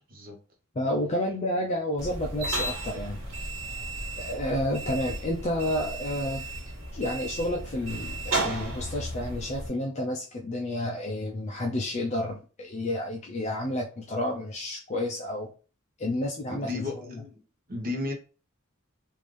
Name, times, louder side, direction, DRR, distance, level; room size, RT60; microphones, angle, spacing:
voice 1, 0.8-3.2 4.2-6.4 6.9-15.5 16.0-16.9, left 1 dB, 35° left, -1 dB, 0.5 m, -30 dB
sound 1, 2.0-9.7, right 2 dB, 70° right, 1.4 m, -34 dB
voice 2, 16.5-17.4 17.7-18.1, left 3 dB, 45° right, 2 dB, 0.9 m, -34 dB
3.6 x 2.6 x 3.1 m, 0.36 s
head